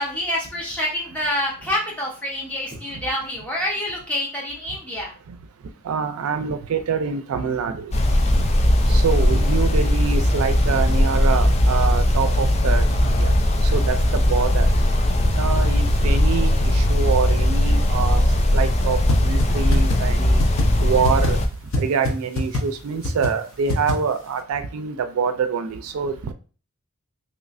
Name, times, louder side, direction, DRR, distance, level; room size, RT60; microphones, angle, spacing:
voice 1, 0.0-5.1, left 1 dB, 5° left, -4 dB, 1.0 m, -27 dB
voice 2, 5.9-7.9 8.9-13.3 13.7-14.7 15.4-18.2 18.5-20.4 20.8-21.4 21.8-26.3, right 6 dB, 80° right, 10 dB, 0.4 m, -25 dB
sound 1, 7.9-21.5, left 1 dB, 30° left, 0.4 m, -19 dB
sound 2, 19.1-19.2 19.4-19.5 19.7-20.0 20.4-20.6 21.0-21.3 21.7-21.8 22.0-22.1 22.4-22.6 23.0-23.3 23.7-23.9, left 2 dB, 70° left, 0.7 m, -22 dB
3.1 x 3.0 x 2.5 m, 0.37 s
head